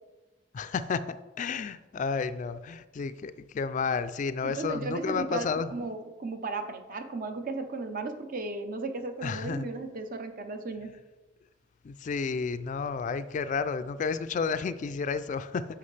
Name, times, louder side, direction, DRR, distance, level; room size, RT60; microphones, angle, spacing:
voice 1, 0.5-5.7 9.2-9.7 11.8-15.7, left 5 dB, 45° left, 12 dB, 0.3 m, -31 dB
voice 2, 4.4-10.9, right 3 dB, 50° right, 7 dB, 0.7 m, -35 dB
9.6 x 5.9 x 3.3 m, 1.2 s
head